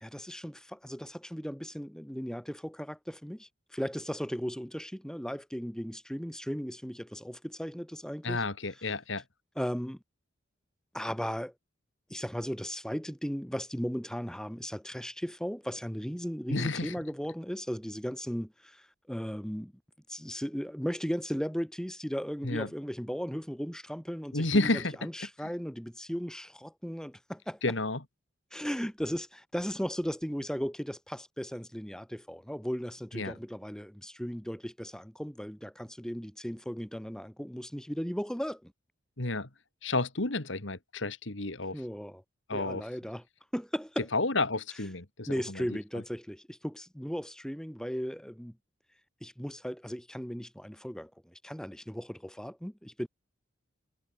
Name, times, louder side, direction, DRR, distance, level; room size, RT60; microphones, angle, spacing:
voice 1, 0.0-8.4 9.6-10.0 10.9-11.5 12.1-19.7 20.1-27.6 28.5-38.7 41.7-42.2 42.5-43.2 43.5-44.1 45.3-48.5 49.2-53.1, equal, 5° left, 1.8 m, -36 dB
voice 2, 8.2-9.2 16.5-16.9 22.4-22.7 24.3-24.9 25.4-25.5 27.6-28.0 33.1-33.3 39.2-39.5 39.8-41.8 42.5-42.8 44.1-45.6, left 2 dB, 65° left, 2.3 m, -31 dB
head